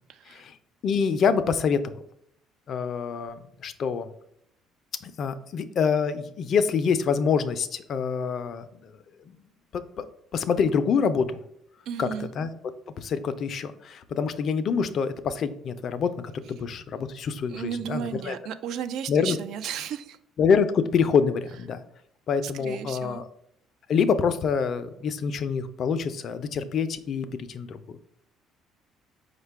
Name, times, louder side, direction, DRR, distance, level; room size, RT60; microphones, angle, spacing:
voice 1, 0.1-0.4 11.9-12.3 17.5-20.2 22.4-23.2, right 8 dB, 65° right, 12 dB, 0.3 m, -34 dB
voice 2, 0.8-1.9 2.7-4.1 5.0-8.9 9.3-9.4 9.7-10.1 10.3-11.4 12.0-12.5 13.0-18.4 19.1-19.4 20.4-21.8 22.3-23.3 23.9-28.0, left 6 dB, 55° left, 11 dB, 0.4 m, -26 dB
4.8 x 2.2 x 4.5 m, 0.75 s
cardioid pair, 95°, 0 cm